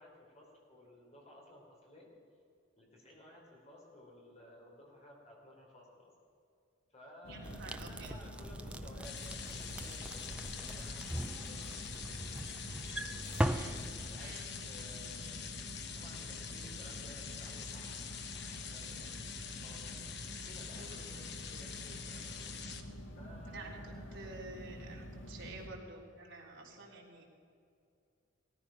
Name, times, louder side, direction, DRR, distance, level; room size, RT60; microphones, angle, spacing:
voice 1, 0.0-2.1 2.8-6.1 6.9-15.5 15.9-19.9 20.5-22.6 23.2-24.3 26.7-26.9, left 1 dB, 30° left, -2 dB, 3.9 m, -57 dB
sound 1, 7.2-25.7, equal, 70° left, 1.9 m, -47 dB
voice 2, 7.3-8.1 13.4-13.8 14.2-14.4 20.7-21.1 23.5-27.2, right 2 dB, 65° right, -2 dB, 3.5 m, -50 dB
sound 2, 7.4-14.1, right 1 dB, 5° right, 0.4 m, -40 dB
sound 3, 9.0-22.8, left 8 dB, 55° left, 1.0 m, -45 dB
17.5 x 14.0 x 5.9 m, 2.5 s
head